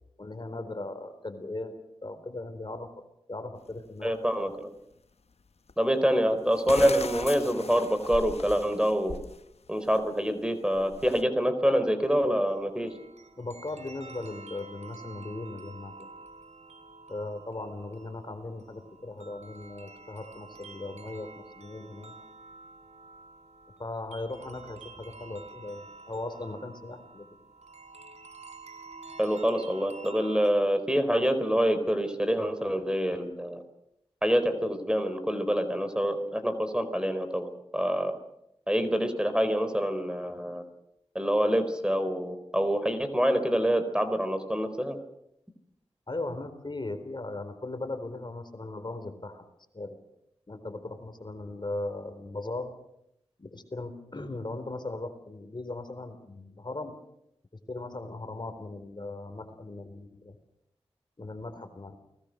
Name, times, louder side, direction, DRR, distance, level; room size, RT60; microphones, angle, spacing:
voice 1, 0.2-2.9 3.3-4.1 13.4-16.1 17.1-22.2 23.8-27.2 46.1-49.4 49.7-50.0 50.5-52.7 53.4-57.0 57.7-60.4 61.2-61.9, left 2 dB, 40° left, 8 dB, 4.1 m, -38 dB
sound 1, 3.7-3.8 5.7-5.8 6.5-9.4 9.8-10.1 10.7-11.2, left 4 dB, 65° left, 1.0 m, -38 dB
voice 2, 4.0-4.7 5.8-9.2 9.7-12.9 29.2-33.6 34.2-38.2 38.7-40.6 41.1-45.0, equal, 5° right, 9 dB, 4.3 m, -26 dB
sound 2, 12.0-30.5, right 3 dB, 75° right, 3.9 m, -49 dB
29.5 x 20.5 x 6.6 m, 0.81 s
cardioid pair, 45°, 11 cm